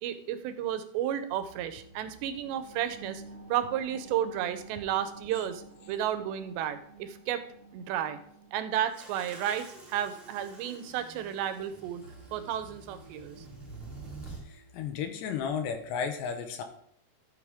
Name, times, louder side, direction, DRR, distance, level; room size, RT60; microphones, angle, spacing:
voice 1, 0.0-3.2 3.5-7.4 7.7-8.2 8.5-12.0 12.3-13.4, right 10 dB, 85° right, 10 dB, 3.0 m, -32 dB
sound 1, 1.3-4.4 12.0-16.0, right 1 dB, 35° left, 2.4 m, -56 dB
sound 2, 1.6-12.7 13.1-13.2, right 3 dB, 60° right, 2.4 m, -52 dB
sound 3, 8.9-14.4, right 3 dB, 20° right, 1.5 m, -48 dB
voice 2, 14.5-16.6, left 7 dB, 80° left, 5 dB, 3.3 m, -33 dB
13.5 x 6.6 x 3.6 m, 0.65 s
omnidirectional pair, 4.9 m